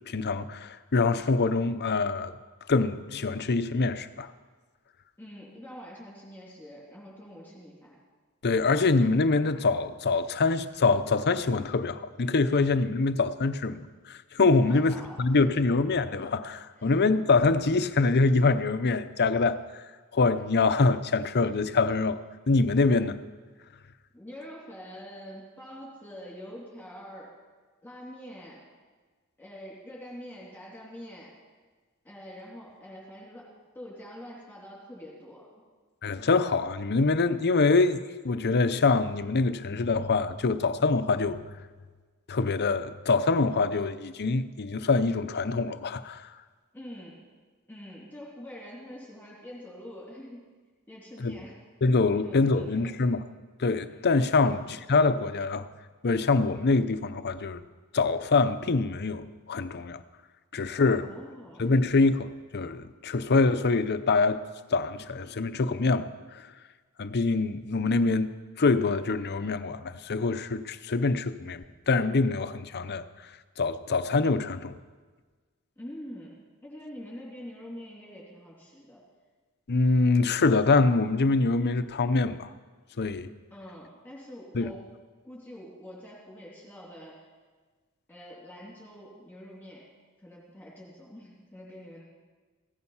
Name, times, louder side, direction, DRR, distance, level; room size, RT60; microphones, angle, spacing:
voice 1, 0.1-2.3 2.7-4.3 8.4-19.8 20.1-22.2 22.5-23.2 36.0-41.4 42.3-46.3 51.2-51.3 51.8-53.2 53.6-55.7 56.0-57.6 57.9-60.0 60.5-61.1 61.6-64.4 64.7-66.4 67.0-68.3 68.6-73.0 73.6-74.8 79.7-82.5 83.0-83.3 84.5-84.7, left 3 dB, 50° left, 0.7 m, -25 dB
voice 2, 5.2-8.0 14.6-15.4 16.8-16.9 24.1-27.3 27.8-28.6 29.4-31.3 32.0-33.5 33.7-35.5 46.7-47.2 47.7-50.5 50.9-53.0 54.4-54.7 61.0-61.7 75.8-79.0 83.5-84.8 85.2-87.2 88.1-89.8 90.2-92.0, equal, 10° left, 3.0 m, -45 dB
16.5 x 14.5 x 5.6 m
head